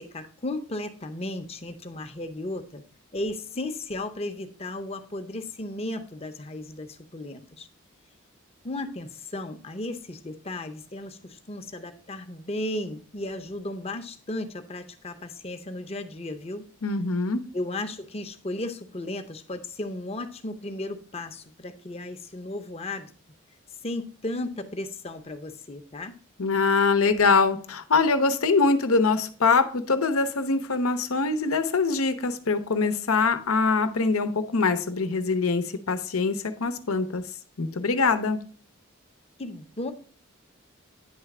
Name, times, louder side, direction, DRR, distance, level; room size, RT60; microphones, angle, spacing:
voice 1, 0.0-2.8 3.1-7.7 8.6-16.7 17.5-23.1 23.8-26.1 39.4-39.9, left 1 dB, 30° left, 7 dB, 0.7 m, -35 dB
voice 2, 16.8-17.5 26.4-37.2 37.6-38.4, left 4 dB, 85° left, 9 dB, 0.8 m, -23 dB
9.7 x 3.3 x 5.9 m, 0.43 s
head